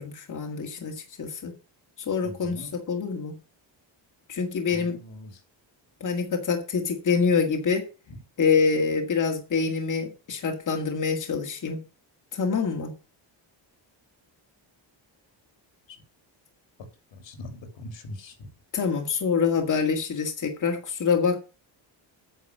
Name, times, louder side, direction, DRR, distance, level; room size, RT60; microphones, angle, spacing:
voice 1, 0.0-1.5 2.0-3.4 4.3-5.0 6.0-7.8 8.4-11.8 12.3-12.9 18.7-21.4, left 5 dB, 40° left, 2.1 m, -26 dB
voice 2, 2.2-2.7 4.7-5.3 17.3-18.3, left 2 dB, 75° left, 3.0 m, -41 dB
9.2 x 6.4 x 6.7 m
wide cardioid pair, 150°, 45 cm